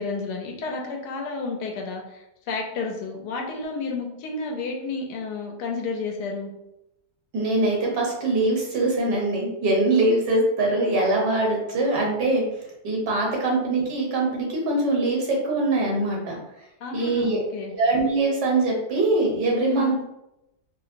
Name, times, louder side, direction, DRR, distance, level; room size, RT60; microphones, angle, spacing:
voice 1, 0.0-6.5 16.8-17.8 19.7-20.0, left 4 dB, 80° left, 1 dB, 1.2 m, -31 dB
voice 2, 7.3-12.4 12.8-16.4 16.9-17.4 17.7-20.0, right 2 dB, 80° right, -1 dB, 1.5 m, -23 dB
3.3 x 2.8 x 2.5 m, 0.89 s
omnidirectional pair, 1.8 m